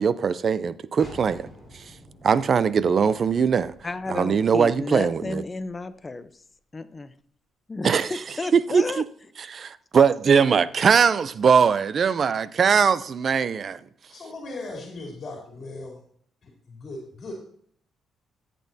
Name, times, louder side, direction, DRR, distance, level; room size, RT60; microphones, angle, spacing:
voice 1, 0.0-1.5 1.7-1.8 2.2-3.7 4.1-5.4 7.8-8.1 8.5-9.0 9.5-13.8, right 6 dB, 50° right, 0.5 m, -21 dB
sound 1, 1.0-6.5, equal, 5° right, 4.6 m, -50 dB
voice 2, 3.8-6.4 6.7-7.1 7.7-9.0, left 3 dB, 25° left, 0.7 m, -32 dB
voice 3, 14.1-16.0 16.4-17.3, left 2 dB, 45° left, 3.3 m, -38 dB
14.0 x 8.5 x 2.8 m
cardioid pair, 90°, 0 cm